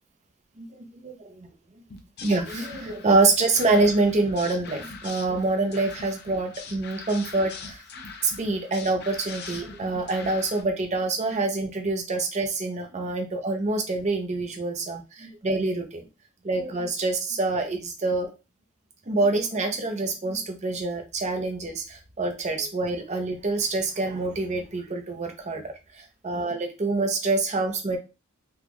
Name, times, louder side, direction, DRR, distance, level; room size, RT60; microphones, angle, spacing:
voice 1, 0.6-1.5 2.2-7.8 8.2-16.0 16.4-18.3 19.1-28.0, right 3 dB, 35° right, 4 dB, 0.6 m, -26 dB
sound 1, 1.9-10.6, left 4 dB, 50° left, 0.5 m, -42 dB
3.5 x 2.3 x 3.0 m, 0.28 s
head